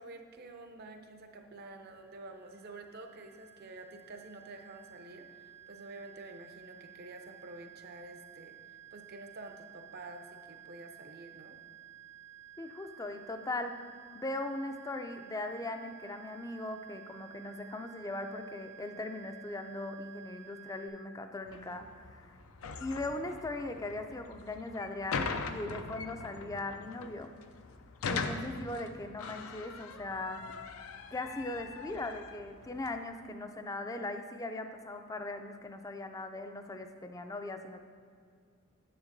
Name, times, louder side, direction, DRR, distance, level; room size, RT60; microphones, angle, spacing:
voice 1, 0.0-11.6, right 2 dB, 50° right, 5 dB, 0.6 m, -49 dB
sound 1, 1.8-20.9, right 11 dB, 75° right, 1.6 m, -54 dB
voice 2, 12.6-13.7 14.1-22.3 22.8-27.3 28.1-30.4 31.1-37.8, left 2 dB, 15° left, 7 dB, 0.4 m, -39 dB
sound 2, 21.5-32.9, left 4 dB, 85° left, 0.4 m, -41 dB
9.8 x 7.0 x 2.6 m, 2.1 s
head